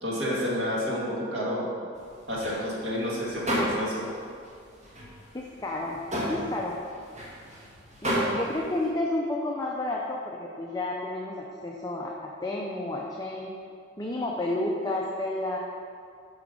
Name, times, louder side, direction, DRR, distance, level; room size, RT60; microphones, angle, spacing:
voice 1, 0.0-1.7 2.3-4.0, equal, 60° right, -6 dB, 2.1 m, -30 dB
sound 1, 2.0-4.2 4.4-8.9, equal, 35° right, 1.7 m, -32 dB
voice 2, 5.3-6.8 8.0-13.5 14.0-15.6, left 2 dB, 20° left, -2 dB, 0.5 m, -31 dB
8.0 x 4.9 x 5.3 m, 2.3 s
head